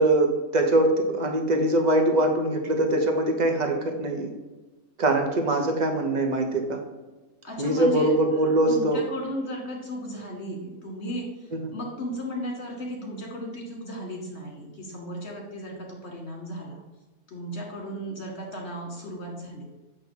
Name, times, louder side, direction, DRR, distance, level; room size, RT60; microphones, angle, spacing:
voice 1, 0.0-4.3 5.0-6.8 7.6-9.0 11.5-11.6, right 1 dB, 40° right, 4 dB, 1.0 m, -23 dB
voice 2, 7.4-16.8 17.3-19.6, equal, 55° left, -1 dB, 2.0 m, -35 dB
8.2 x 3.1 x 5.4 m, 1.2 s
omnidirectional pair, 1.3 m